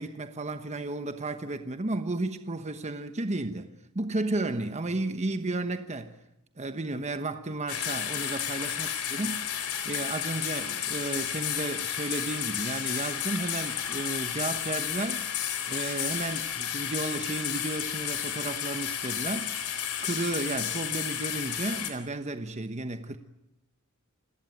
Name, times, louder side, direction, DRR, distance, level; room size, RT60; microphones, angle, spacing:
voice 1, 0.0-3.7 3.9-6.2 6.6-9.4 9.8-15.3 15.7-19.5 20.0-23.2, right 2 dB, 30° right, 1.1 m, -33 dB
sound 1, 7.7-21.9, left 9 dB, 75° left, 4.0 m, -32 dB
28.5 x 17.5 x 9.2 m
head